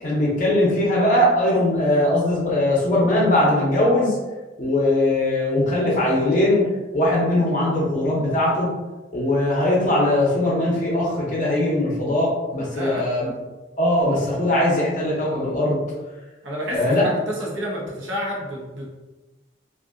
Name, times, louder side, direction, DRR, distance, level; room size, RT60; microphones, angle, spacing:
voice 1, 0.0-4.2 4.6-6.7 6.9-8.7 9.1-13.3 13.8-15.8 16.7-17.0, left 1 dB, 40° left, -5 dB, 0.5 m, -20 dB
voice 2, 12.7-13.1 16.4-18.9, equal, 90° right, -3 dB, 0.8 m, -30 dB
2.6 x 2.4 x 2.4 m, 1.1 s
head